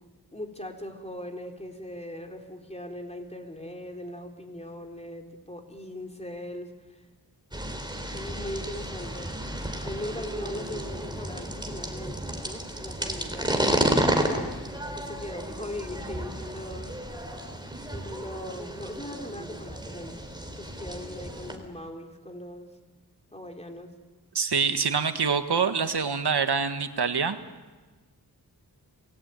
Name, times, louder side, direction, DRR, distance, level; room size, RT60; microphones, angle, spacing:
voice 1, 0.3-7.0 8.1-9.4 9.8-14.4 14.9-16.9 17.9-20.2 20.6-22.7 23.3-23.9, left 1 dB, 15° left, 2 dB, 3.9 m, -40 dB
sound 1, 7.5-21.6, right 1 dB, 10° right, 3.9 m, -32 dB
voice 2, 24.4-27.4, right 5 dB, 80° right, 8 dB, 1.7 m, -25 dB
27.5 x 19.5 x 9.3 m, 1.3 s
wide cardioid pair, 75°, 39 cm